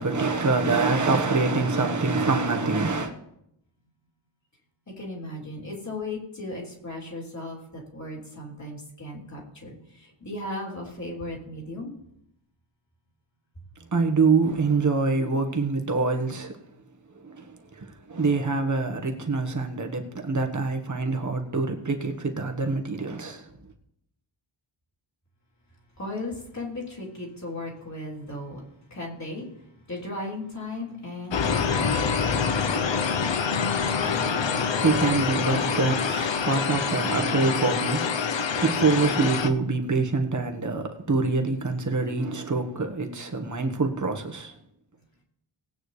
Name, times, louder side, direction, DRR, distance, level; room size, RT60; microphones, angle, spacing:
voice 1, 0.0-3.1 13.9-16.6 17.2-23.5 34.8-38.3 38.6-44.5, right 3 dB, 35° right, 1.4 m, -25 dB
voice 2, 5.0-7.6 7.9-11.9 26.0-28.6 28.9-29.5 29.9-31.8, left 2 dB, 35° left, 3.5 m, -36 dB
sound 1, 31.3-39.5, left 6 dB, 60° left, 0.9 m, -26 dB
19.0 x 8.8 x 3.3 m
wide cardioid pair, 140°, 49 cm